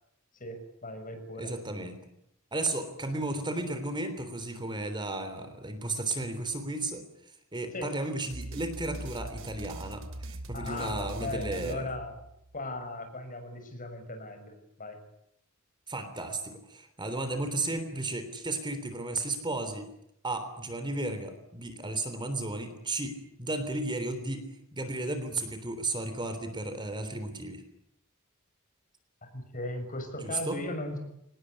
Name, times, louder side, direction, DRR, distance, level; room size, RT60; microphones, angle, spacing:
voice 1, 0.4-1.5 7.7-7.9 10.5-12.1 12.5-14.5 14.8-15.0 29.3-31.0, left 2 dB, 40° left, 6 dB, 6.5 m, -37 dB
voice 2, 1.4-2.0 2.5-7.0 7.5-11.9 15.9-19.9 20.2-24.4 24.7-27.6 30.2-30.6, right 2 dB, 20° right, 8 dB, 3.4 m, -34 dB
sound 1, 8.3-12.6, right 1 dB, 60° right, 3.1 m, -41 dB
25.5 x 19.5 x 9.9 m, 0.80 s
head